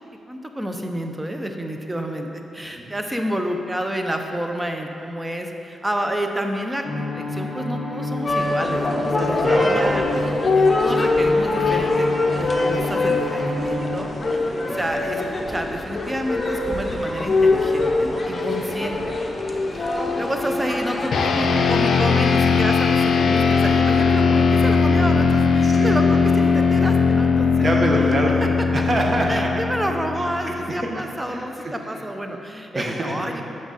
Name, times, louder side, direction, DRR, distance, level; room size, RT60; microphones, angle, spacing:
voice 1, 0.3-15.2 15.5-27.8 28.4-28.7 29.3-33.4, equal, 15° right, 4 dB, 0.6 m, -29 dB
sound 1, 6.8-14.1, left 2 dB, 15° left, 1.3 m, -30 dB
sound 2, 8.3-21.1, left 2 dB, 35° left, 0.7 m, -23 dB
voice 2, 9.4-9.8 14.6-14.8 25.6-26.0 27.6-28.4 28.7-29.5 30.8-30.9 31.3-31.7 32.7-33.1, right 1 dB, 40° right, -1 dB, 1.1 m, -24 dB
sound 3, 21.1-30.7, left 5 dB, 65° left, 0.5 m, -19 dB
6.2 x 5.9 x 4.1 m, 2.8 s
cardioid pair, 85°, 0 cm